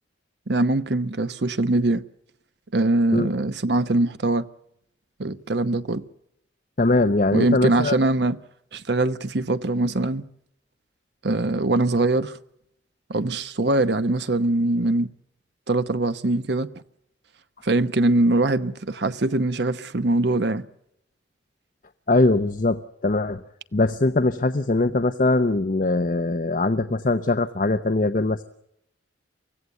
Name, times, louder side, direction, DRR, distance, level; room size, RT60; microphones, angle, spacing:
voice 1, 0.5-2.0 2.7-4.5 5.2-6.1 7.3-8.4 8.7-10.2 11.2-12.4 13.1-15.1 15.7-16.7 17.6-20.7, right 2 dB, 65° right, 0.9 m, -22 dB
voice 2, 6.8-8.0 22.1-23.4 23.7-28.4, left 2 dB, 45° left, 0.7 m, -21 dB
24.5 x 16.0 x 8.2 m
head